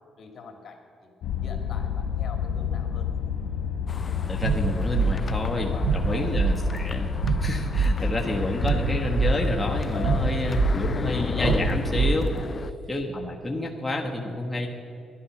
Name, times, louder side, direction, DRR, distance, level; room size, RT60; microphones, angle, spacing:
voice 1, 0.2-1.1 1.4-3.1 5.5-6.5 8.0-8.1 9.8-10.8 12.3-12.8, left 4 dB, 55° left, 4 dB, 2.0 m, -42 dB
sound 1, 1.2-12.3, left 7 dB, 75° left, 1.1 m, -30 dB
sound 2, 3.9-12.7, left 5 dB, 40° left, 0.3 m, -37 dB
voice 2, 4.3-12.3 12.9-14.7, left 1 dB, 10° left, 0 dB, 1.2 m, -29 dB
sound 3, 4.4-12.7, right 5 dB, 75° right, 0.4 m, -26 dB
11.5 x 11.0 x 6.0 m, 2.5 s
cardioid pair, 90°, 0 cm